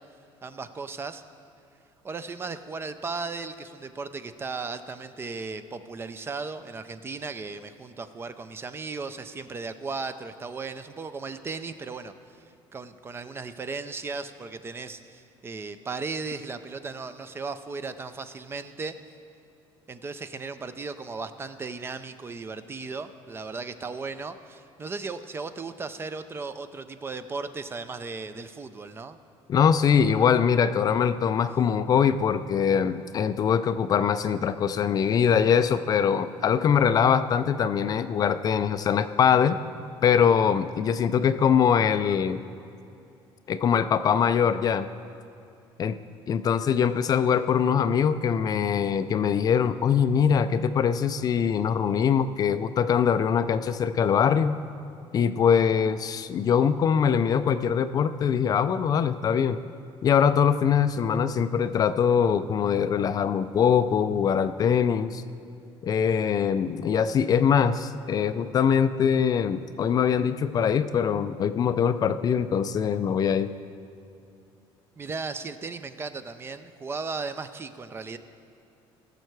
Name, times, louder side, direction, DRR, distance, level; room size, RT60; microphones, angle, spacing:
voice 1, 0.4-1.2 2.0-12.4 12.7-19.0 19.9-29.2 75.0-78.2, right 4 dB, 25° right, 11 dB, 0.5 m, -36 dB
voice 2, 29.5-39.6 40.0-42.4 43.5-44.9 45.8-45.9 46.3-54.6 55.1-59.6 60.0-65.2 65.8-73.5, left 7 dB, 40° left, 11 dB, 0.4 m, -23 dB
16.5 x 6.7 x 4.7 m, 2.7 s
cardioid pair, 130°, 10 cm